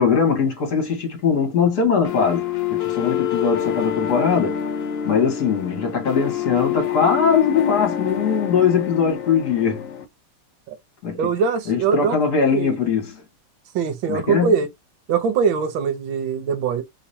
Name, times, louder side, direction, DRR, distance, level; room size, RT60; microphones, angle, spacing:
voice 1, 0.0-4.6 5.0-9.9 11.0-11.3 11.7-13.2 14.1-14.5, left 6 dB, 50° left, 1.8 m, -21 dB
sound 1, 2.0-10.0, left 10 dB, 80° left, 0.7 m, -26 dB
voice 2, 11.1-12.9 13.7-14.7 15.1-16.8, right 6 dB, 70° right, 1.4 m, -22 dB
3.6 x 3.0 x 2.6 m
omnidirectional pair, 2.4 m